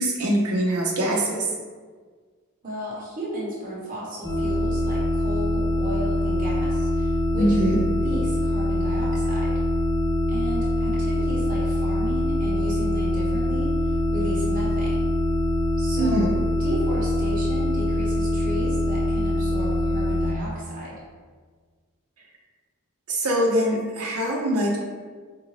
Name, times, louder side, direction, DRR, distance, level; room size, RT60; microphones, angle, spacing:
voice 1, 0.0-1.5 7.4-7.8 16.0-16.3 23.1-24.8, right 1 dB, 80° right, -2 dB, 0.6 m, -23 dB
voice 2, 2.6-9.5 10.3-15.1 15.8-16.3 16.6-21.0, right 1 dB, 40° right, -7 dB, 1.0 m, -34 dB
sound 1, 4.2-20.3, left 1 dB, 20° left, 0.6 m, -24 dB
4.5 x 2.5 x 3.1 m, 1.5 s
head